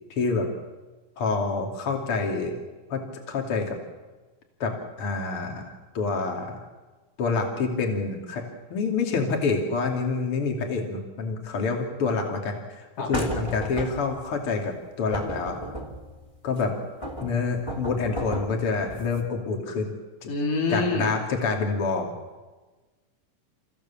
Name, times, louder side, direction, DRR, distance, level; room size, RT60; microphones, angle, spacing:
voice 1, 0.1-0.5 1.2-2.6 2.9-3.8 4.6-6.6 7.2-8.4 8.7-15.6 16.4-16.7 17.2-19.9 20.2-20.3 20.7-22.1, left 4 dB, 45° left, 2 dB, 3.3 m, -27 dB
sound 1, 13.1-14.3 15.1-16.6 17.0-19.2, right 1 dB, 10° left, 2.3 m, -34 dB
voice 2, 20.3-21.1, left 3 dB, 85° left, 0 dB, 4.5 m, -26 dB
30.0 x 15.5 x 7.2 m, 1.2 s
omnidirectional pair, 3.7 m